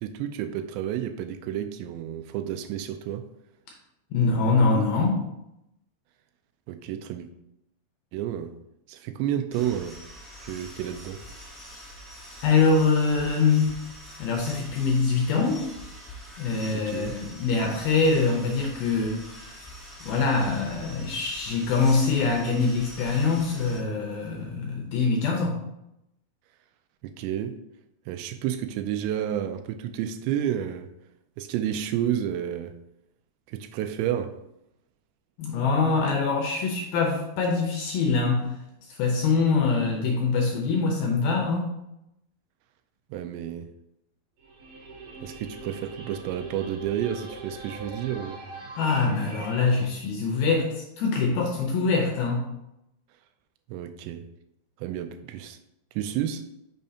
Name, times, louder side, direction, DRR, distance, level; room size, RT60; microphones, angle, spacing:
voice 1, 0.0-3.3 6.7-7.3 8.1-8.5 8.9-10.0 10.4-11.2 16.7-17.2 27.0-27.6 28.1-30.9 31.4-32.7 33.5-34.3 43.1-43.7 45.2-48.4 53.7-54.2 54.8-55.6 56.0-56.4, right 10 dB, 85° right, 8 dB, 2.7 m, -30 dB
voice 2, 4.1-5.2 12.4-13.8 14.2-15.7 16.4-19.2 20.0-25.6 35.4-41.7 48.8-52.5, left 4 dB, 75° left, 1 dB, 2.3 m, -24 dB
sound 1, 9.5-23.8, equal, ahead, 1.6 m, -44 dB
sound 2, 44.4-49.9, right 2 dB, 55° right, 3.6 m, -42 dB
8.8 x 6.4 x 2.8 m, 0.85 s
omnidirectional pair, 5.2 m